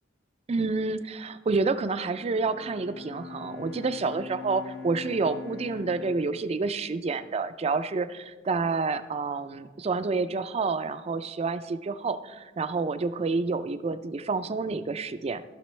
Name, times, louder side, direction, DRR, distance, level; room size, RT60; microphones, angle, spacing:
voice 1, 0.5-15.5, right 4 dB, 35° right, 12 dB, 0.4 m, -29 dB
Bowed string instrument, 2.0-7.4, left 6 dB, 80° left, 1.1 m, -43 dB
14.5 x 6.0 x 3.2 m, 1.3 s
head